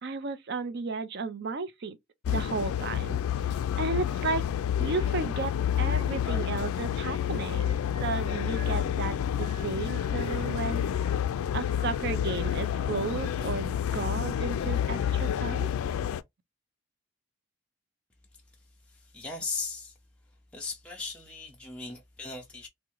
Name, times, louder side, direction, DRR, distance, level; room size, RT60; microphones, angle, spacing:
voice 1, 0.0-2.0 2.3-3.2 3.8-4.5 4.8-5.5 5.8-10.9 11.5-15.7, right 4 dB, 50° right, 0.5 m, -33 dB
sound 1, 2.2-16.2, left 9 dB, 80° left, 0.3 m, -29 dB
sound 2, 5.3-6.1 6.8-8.8 9.4-11.2 11.7-13.6, right 3 dB, 25° right, 0.9 m, -52 dB
voice 2, 18.9-19.9 20.5-22.7, left 4 dB, 5° left, 0.5 m, -37 dB
3.6 x 2.1 x 3.0 m
head